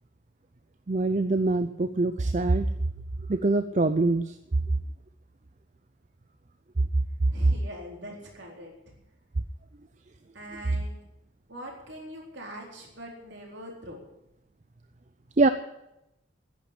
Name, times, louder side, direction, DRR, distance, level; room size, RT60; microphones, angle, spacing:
voice 1, 0.9-2.7 3.3-4.3 15.4-15.5, right 2 dB, 35° right, 10 dB, 0.5 m, -24 dB
voice 2, 7.3-8.9 10.3-11.1 11.5-14.0, equal, 60° right, -1 dB, 4.0 m, -42 dB
10.5 x 10.0 x 10.0 m, 0.85 s
head